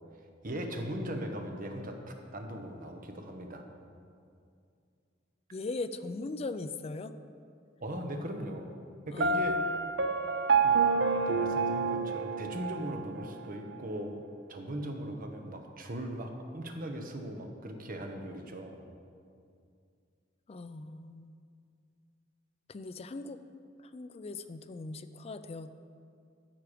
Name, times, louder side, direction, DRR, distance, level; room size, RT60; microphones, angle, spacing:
voice 1, 0.4-3.6 7.8-8.7 9.1-9.6 10.6-10.8 11.1-14.1 14.5-18.8, equal, 50° right, 4 dB, 1.0 m, -39 dB
voice 2, 5.5-7.1 9.1-9.6 20.5-21.3 22.7-23.4 23.9-25.7, left 3 dB, 30° left, 10 dB, 0.4 m, -39 dB
Piano, 9.2-13.1, right 4 dB, 65° right, 0.5 m, -28 dB
13.5 x 5.8 x 5.0 m, 2.4 s
head